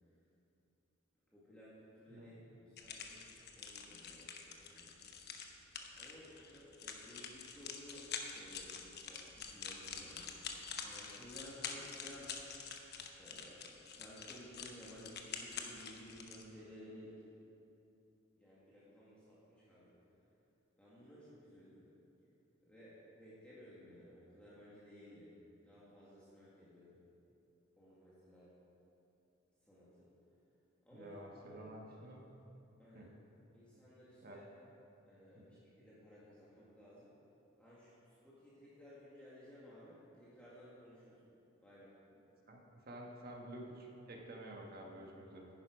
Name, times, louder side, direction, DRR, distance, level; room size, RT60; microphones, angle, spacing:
voice 1, 1.3-3.3 3.6-5.0 6.0-10.3 10.8-12.3 13.2-17.2 18.4-20.0 20.8-21.9 22.6-25.4 25.6-27.0 27.8-28.6 29.6-30.1 30.8-31.7 31.9-32.1 32.8-33.1 33.5-34.4 35.1-37.1 37.6-41.2 41.6-42.0, equal, 5° left, -10 dB, 1.8 m, -57 dB
sound 1, 2.8-16.4, left 6 dB, 55° left, 0.9 m, -47 dB
voice 2, 30.9-32.2 32.9-33.1 34.2-34.4 35.3-35.4 42.5-45.5, right 1 dB, 50° right, 0 dB, 1.3 m, -50 dB
11.0 x 9.6 x 5.0 m, 2.9 s
head